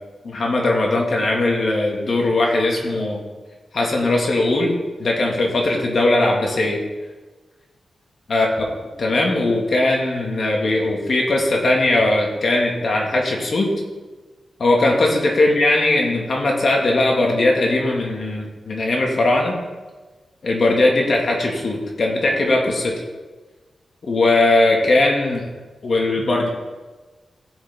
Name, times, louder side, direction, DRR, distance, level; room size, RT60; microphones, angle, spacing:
voice 1, 0.2-3.2 3.7-4.7 5.0-6.8 8.3-8.5 9.0-13.7 14.6-19.5 20.4-23.0 24.0-25.5 25.8-26.5, left 2 dB, 55° left, 0 dB, 2.1 m, -19 dB
15.5 x 7.1 x 3.8 m, 1.3 s
wide cardioid pair, 95°, 0 cm